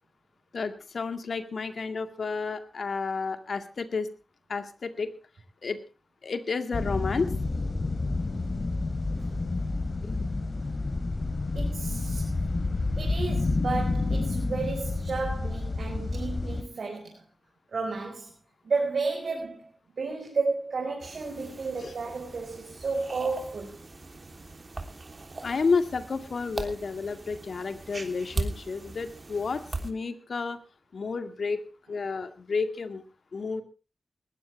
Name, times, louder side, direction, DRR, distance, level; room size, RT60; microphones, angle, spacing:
voice 1, 0.5-4.1 4.5-5.1 5.6-5.8 6.2-7.3 10.0-10.2 21.8-21.9 25.4-30.6 30.9-31.6 31.9-33.0 33.3-33.6, left 4 dB, 75° left, 9 dB, 2.2 m, -31 dB
sound 1, 6.7-16.6, left 3 dB, 55° left, 3.7 m, -29 dB
voice 2, 11.5-12.3 13.0-17.2 17.7-18.3 18.6-19.7 20.0-23.8, right 4 dB, 80° right, 1 dB, 4.8 m, -32 dB
sound 2, 21.0-29.9, right 2 dB, 50° right, 3.2 m, -39 dB
20.0 x 15.5 x 3.4 m, 0.34 s
cardioid pair, 40°, 0 cm